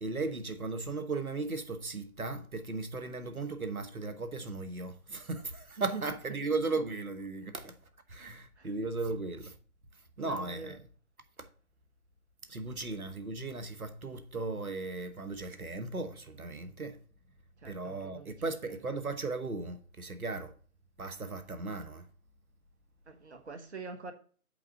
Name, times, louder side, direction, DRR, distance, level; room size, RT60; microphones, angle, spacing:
voice 1, 0.0-7.7 8.1-9.5 10.2-10.8 11.4-11.5 12.5-17.0 17.6-20.5 21.0-22.1, right 3 dB, 80° right, 1.2 m, -36 dB
voice 2, 8.2-8.7 10.2-10.8 17.6-18.3 23.1-24.1, right 4 dB, 50° right, 1.2 m, -45 dB
8.3 x 3.6 x 6.4 m
figure-of-eight pair, 150°, 43 cm